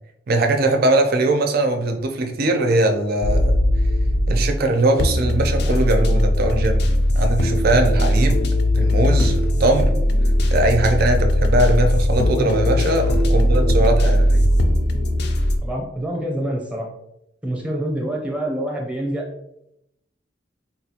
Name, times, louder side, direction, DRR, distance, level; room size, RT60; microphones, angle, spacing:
voice 1, 0.3-3.6 4.3-8.4 8.8-10.0 10.5-14.4, right 2 dB, 55° right, 5 dB, 0.5 m, -20 dB
sound 1, 3.2-4.6 5.0-15.6, left 1 dB, 60° left, 0.4 m, -18 dB
voice 2, 12.3-12.7 13.0-13.2 14.9-15.0 15.6-16.9 17.4-19.2, right 1 dB, 5° right, -1 dB, 0.7 m, -27 dB
3.9 x 2.4 x 2.8 m, 0.83 s
head